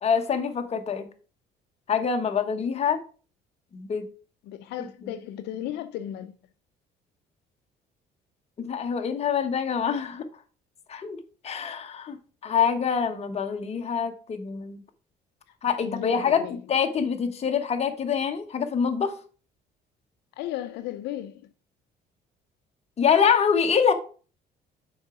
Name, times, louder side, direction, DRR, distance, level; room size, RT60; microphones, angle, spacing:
voice 1, 0.0-1.1 1.9-3.0 3.7-4.0 8.6-10.2 10.9-11.2 11.4-12.2 12.4-14.8 15.6-16.4 16.7-19.1 23.0-23.9, left 7 dB, 40° left, 1.1 m, -25 dB
voice 2, 4.4-6.4 15.8-16.6 20.4-21.5, left 12 dB, 80° left, 0.5 m, -35 dB
6.4 x 4.8 x 4.9 m
cardioid pair, 110°, 17 cm